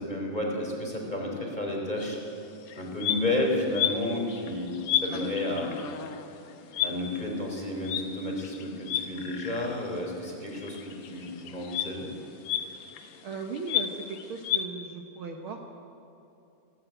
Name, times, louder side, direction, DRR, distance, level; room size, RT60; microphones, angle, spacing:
voice 1, 0.0-2.2 2.8-4.7 5.0-5.7 6.8-12.1, left 1 dB, 10° left, -1 dB, 3.6 m, -31 dB
sound 1, 2.0-2.1 2.6-9.9 10.2-14.6, left 10 dB, 85° left, 1.2 m, -33 dB
voice 2, 13.2-15.6, right 4 dB, 80° right, 3 dB, 1.1 m, -37 dB
17.5 x 17.0 x 9.0 m, 2.9 s
omnidirectional pair, 4.1 m